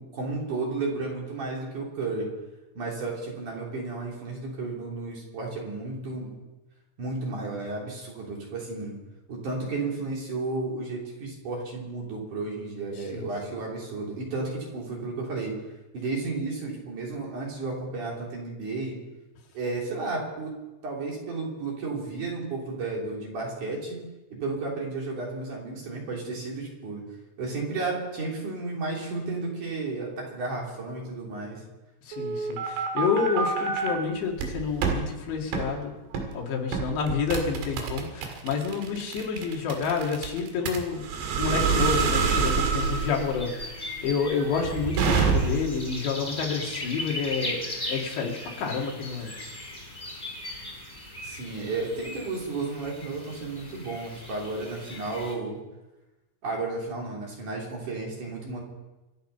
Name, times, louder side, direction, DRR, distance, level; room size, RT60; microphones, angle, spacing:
voice 1, 0.0-2.3 2.7-6.3 7.0-9.0 9.3-15.6 15.9-19.0 19.5-20.5 20.8-24.0 24.3-27.0 27.4-31.6 51.2-55.6 56.4-58.6, right 3 dB, 45° right, -2 dB, 4.5 m, -33 dB
voice 2, 32.0-35.9 36.3-41.0 41.4-49.5, left 5 dB, 80° left, 0 dB, 4.5 m, -29 dB
sound 1, 32.1-33.9 34.4-35.0 35.5-35.7 36.1-36.4 36.7-45.8, right 5 dB, 75° right, 4.1 m, -27 dB
sound 2, 42.8-55.3, left 1 dB, 10° left, 3.5 m, -38 dB
26.0 x 9.3 x 5.6 m, 1.1 s
omnidirectional pair, 5.1 m